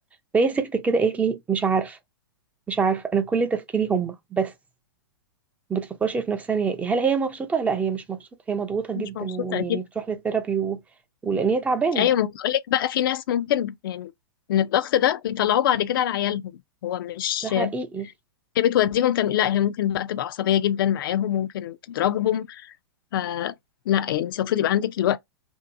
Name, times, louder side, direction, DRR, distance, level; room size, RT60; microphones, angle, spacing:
voice 1, 0.3-2.0 2.7-4.5 5.7-9.8 10.2-10.8 11.2-12.1 17.4-18.1, right 5 dB, 10° right, 0.4 m, -25 dB
voice 2, 8.9-9.8 12.0-14.1 14.5-16.4 16.8-17.7 18.6-22.7 23.1-23.5 23.9-25.2, left 11 dB, 60° left, 0.4 m, -24 dB
2.7 x 2.5 x 2.4 m
hypercardioid pair, 125°, 13 cm